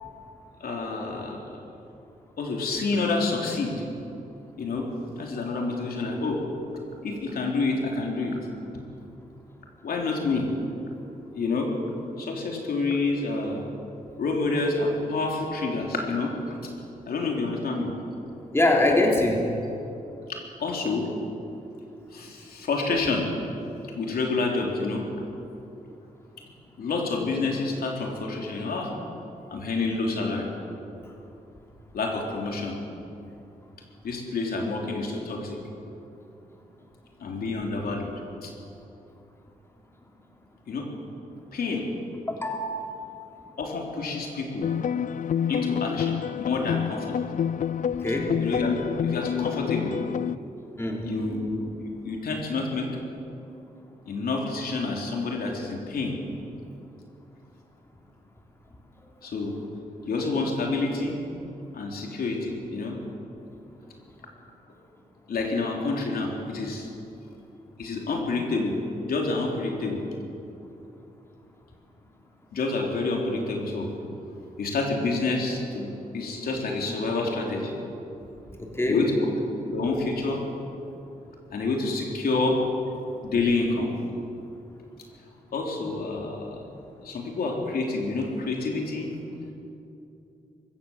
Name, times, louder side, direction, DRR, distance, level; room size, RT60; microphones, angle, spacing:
voice 1, 0.6-1.4 2.4-3.8 4.6-4.9 5.2-6.4 7.0-8.4 9.8-10.5 11.3-11.7 12.2-13.6 14.2-16.7 17.1-17.9 20.3-21.1 22.1-23.2 23.9-25.1 26.8-28.9 29.5-30.5 31.9-32.8 34.0-35.6 37.2-38.1 38.4-38.5 40.7-40.9 41.5-41.9 43.6-44.7 45.5-47.2 48.4-50.0 51.0-52.9 54.1-56.2 59.2-59.5 60.1-61.2 61.7-63.0 65.3-66.9 67.8-68.8 69.0-70.0 72.5-73.9 74.6-77.7 78.9-79.3 79.6-80.4 81.5-82.6 83.2-83.9 85.5-86.6 87.0-89.1, left 3 dB, 80° left, 0 dB, 3.5 m, -28 dB
voice 2, 18.5-19.6 23.8-24.0 42.2-43.0 47.7-48.4 50.8-51.1 59.0-59.1 78.6-79.0 86.1-86.2, left 1 dB, 15° left, 0 dB, 3.1 m, -25 dB
sound 1, 44.6-50.4, left 8 dB, 60° left, 0.4 m, -28 dB
24.0 x 15.5 x 7.3 m, 2.8 s
cardioid pair, 95°, 15 cm